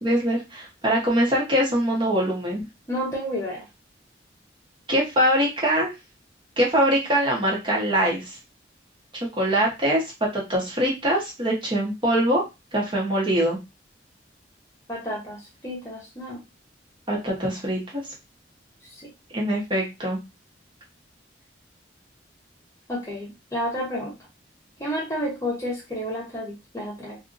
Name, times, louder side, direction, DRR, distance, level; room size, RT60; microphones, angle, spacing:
voice 1, 0.0-2.6 4.9-5.9 6.6-8.4 9.4-12.4 12.7-13.6 17.1-18.0 19.3-20.2, right 1 dB, 25° right, -2 dB, 0.9 m, -23 dB
voice 2, 2.9-3.7 14.9-16.4 19.0-19.1 22.9-24.1 24.8-27.2, equal, 15° left, -3 dB, 0.8 m, -30 dB
2.6 x 2.6 x 2.5 m, 0.24 s
head